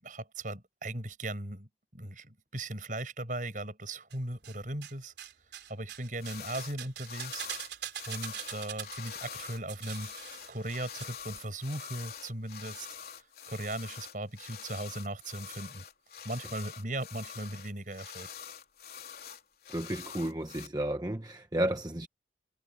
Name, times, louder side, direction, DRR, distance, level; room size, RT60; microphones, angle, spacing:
voice 1, 0.0-5.1 5.7-7.4 8.1-10.1 10.5-15.8 16.2-18.3, right 1 dB, 45° right, 8.0 m, -38 dB
sound 1, 4.1-4.9 5.2-11.1 11.3-11.4, right 10 dB, 75° right, 3.2 m, -43 dB
sound 2, 6.2-6.8 7.0-20.7, left 7 dB, 55° left, 3.8 m, -45 dB
voice 2, 19.7-22.1, right 1 dB, 20° right, 1.0 m, -32 dB
head